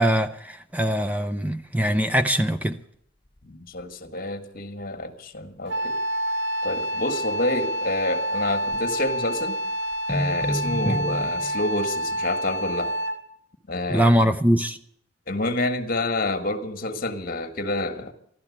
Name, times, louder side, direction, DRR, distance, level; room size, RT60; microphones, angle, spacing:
voice 1, 0.0-2.8 10.9-11.0 13.9-14.8, right 1 dB, 10° right, 0.5 m, -22 dB
voice 2, 3.4-6.0 6.6-9.6 10.1-12.9 13.7-14.4 15.3-18.1, left 2 dB, 50° left, 1.6 m, -28 dB
sound 1, 3.4-3.5 3.8-3.9 8.7-9.2 9.9-11.6, equal, 25° left, 1.2 m, -30 dB
Wind instrument woodwind instrument, 5.7-13.3, equal, 75° right, 1.4 m, -28 dB
14.0 x 12.0 x 8.4 m
head